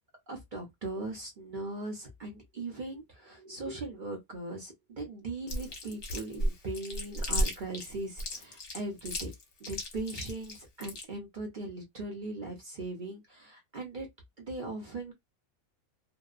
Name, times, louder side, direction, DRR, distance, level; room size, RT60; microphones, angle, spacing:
voice 1, 0.3-9.3 9.6-14.1 14.4-15.1, right 2 dB, 45° right, 0.7 m, -39 dB
Chewing mastication, 5.5-11.0, equal, 55° left, 1.1 m, -33 dB
2.8 x 2.1 x 2.4 m
omnidirectional pair, 1.5 m